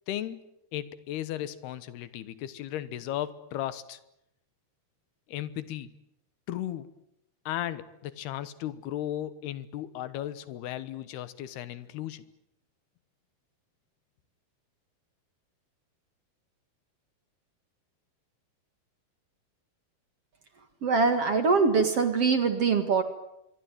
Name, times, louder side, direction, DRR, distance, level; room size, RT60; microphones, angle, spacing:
voice 1, 0.1-0.4 0.7-4.0 5.3-5.9 6.5-6.9 7.5-12.2, left 12 dB, 80° left, 15 dB, 3.3 m, -35 dB
voice 2, 20.8-23.0, right 4 dB, 45° right, 9 dB, 2.4 m, -23 dB
25.0 x 23.0 x 9.4 m, 0.81 s
omnidirectional pair, 4.5 m